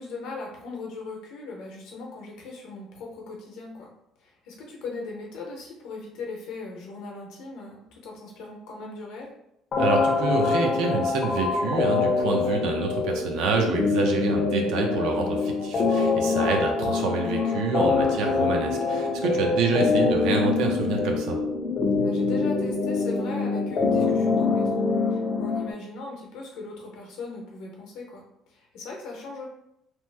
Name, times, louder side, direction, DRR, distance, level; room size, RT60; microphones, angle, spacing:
voice 1, 0.0-3.9 4.2-9.3 14.0-14.2 22.0-29.5, left 3 dB, 65° left, 0 dB, 0.8 m, -39 dB
sound 1, 9.7-25.7, left 4 dB, 30° left, 0.4 m, -24 dB
voice 2, 9.8-21.4, right 4 dB, 65° right, 2 dB, 0.6 m, -27 dB
3.0 x 2.0 x 3.3 m, 0.80 s
cardioid pair, 175°, 0 cm